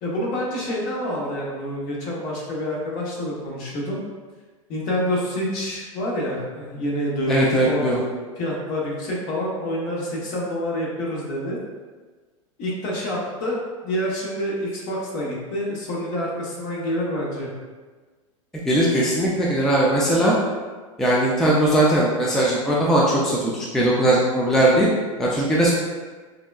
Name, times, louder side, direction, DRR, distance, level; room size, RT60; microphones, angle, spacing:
voice 1, 0.0-4.0 4.7-7.9 8.4-11.6 12.6-13.6 13.8-17.5, equal, 45° left, -3 dB, 0.9 m, -27 dB
voice 2, 7.3-8.0 18.7-20.3 21.0-24.9 25.2-25.7, right 1 dB, ahead, -5 dB, 0.3 m, -19 dB
3.6 x 2.2 x 2.3 m, 1.4 s
hypercardioid pair, 110°, 17 cm